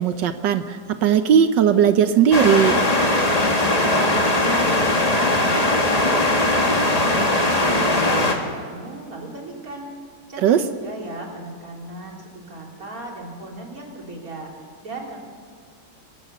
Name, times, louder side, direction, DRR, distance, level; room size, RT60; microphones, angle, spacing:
voice 1, 0.0-2.8 10.4-10.6, right 8 dB, 80° right, 10 dB, 1.5 m, -17 dB
sound 1, 2.3-8.3, left 1 dB, 20° left, 1.9 m, -19 dB
voice 2, 3.5-7.3 7.6-9.9 10.3-10.6 10.8-14.5 14.8-15.2, right 2 dB, 50° right, -1 dB, 3.9 m, -36 dB
25.5 x 15.5 x 6.9 m, 2.1 s
omnidirectional pair, 1.9 m